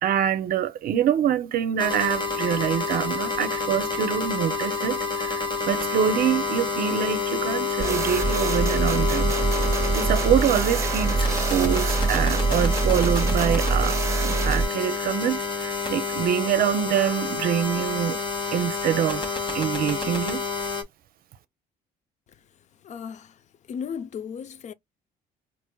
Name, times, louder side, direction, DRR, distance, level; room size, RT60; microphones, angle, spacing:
voice 1, 0.0-9.3 9.9-18.2 18.5-19.2 19.5-20.4, right 9 dB, 60° right, 0.6 m, -25 dB
sound 1, 1.8-20.8, left 4 dB, 30° left, 1.1 m, -28 dB
sound 2, 7.8-14.6, right 3 dB, 20° right, 1.3 m, -24 dB
voice 2, 22.8-23.4 23.7-24.7, left 7 dB, 45° left, 0.5 m, -35 dB
4.3 x 2.5 x 2.3 m
cardioid pair, 110°, 17 cm